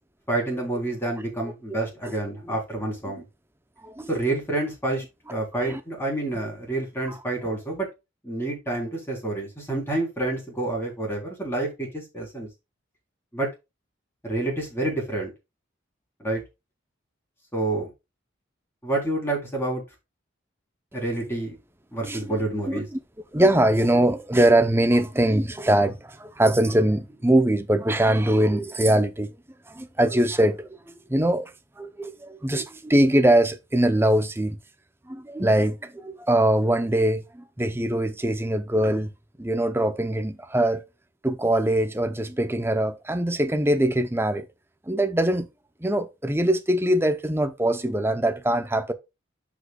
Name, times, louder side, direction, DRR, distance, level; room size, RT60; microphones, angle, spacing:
voice 1, 0.3-3.2 4.1-5.0 5.3-7.9 8.2-12.5 13.3-13.5 14.2-15.3 16.2-16.4 17.5-17.9 18.8-19.8 20.9-21.6 21.9-22.9, right 2 dB, 10° left, 3.7 m, -28 dB
voice 2, 22.7-23.0 23.3-29.3 29.7-31.5 31.8-34.6 35.1-39.1 39.4-40.8 41.2-44.5 44.9-45.5 45.8-48.9, right 1 dB, 10° right, 0.7 m, -22 dB
12.5 x 5.1 x 2.4 m
head